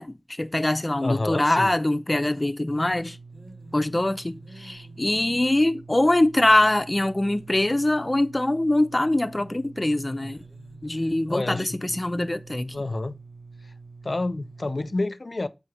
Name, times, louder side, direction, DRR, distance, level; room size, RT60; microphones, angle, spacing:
voice 1, 0.0-3.2 3.7-10.4 10.8-12.7, left 1 dB, 40° left, 0.8 m, -23 dB
voice 2, 1.0-1.8 11.3-12.0 12.7-13.2 13.6-13.7 14.0-15.5, left 2 dB, 75° left, 0.7 m, -29 dB
sound 1, 2.7-14.9, right 3 dB, 45° right, 2.6 m, -45 dB
8.6 x 4.8 x 4.9 m
wide cardioid pair, 55°, 0 cm